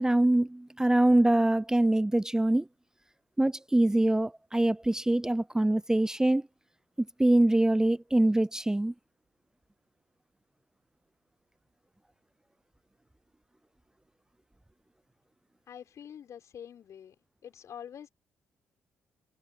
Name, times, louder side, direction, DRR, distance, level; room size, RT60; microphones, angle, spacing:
voice 1, 0.0-2.7 3.4-6.4 7.2-8.9, right 1 dB, 10° right, 0.6 m, -24 dB
voice 2, 15.7-17.2 17.4-18.1, left 9 dB, 60° left, 6.5 m, -46 dB
hypercardioid pair, 45°, 6 cm